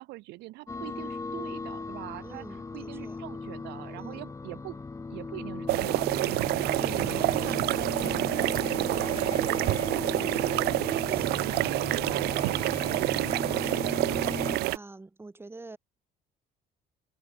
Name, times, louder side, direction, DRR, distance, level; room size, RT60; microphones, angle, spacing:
voice 1, 0.0-4.8 5.1-6.2 6.5-6.8 7.1-14.0, right 21 dB, 90° right, 1.0 m, -43 dB
sound 1, 0.7-14.6, left 4 dB, 20° left, 1.0 m, -37 dB
voice 2, 2.2-3.2 4.0-4.3 6.8-7.6 11.1-11.4 14.3-15.8, right 3 dB, 15° right, 1.8 m, -46 dB
Fill (with liquid), 5.7-9.7, left 10 dB, 55° left, 3.0 m, -49 dB
sound 2, 5.7-14.8, right 18 dB, 70° right, 0.4 m, -28 dB
cardioid pair, 110°, 17 cm